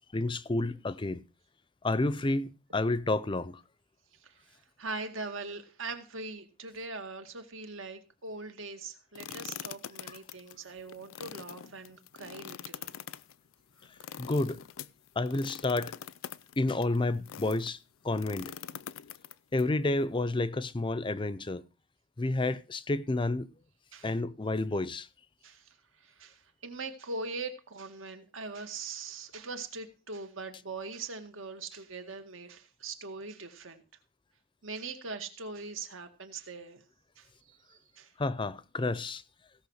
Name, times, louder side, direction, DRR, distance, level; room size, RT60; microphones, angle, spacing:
voice 1, 0.1-1.2 1.8-3.6 10.1-10.2 14.2-14.6 15.2-15.9 16.6-17.8 18.0-18.5 19.5-21.6 22.2-23.5 24.0-25.1 38.2-39.2, left 2 dB, 25° left, 0.5 m, -30 dB
voice 2, 4.2-12.9 23.9-24.1 25.4-25.8 26.0-33.8 34.6-36.8 37.2-38.1, right 3 dB, 80° right, 2.0 m, -41 dB
sound 1, 9.1-17.7 18.1-19.6, left 9 dB, 90° left, 0.5 m, -44 dB
16.5 x 5.9 x 6.4 m
head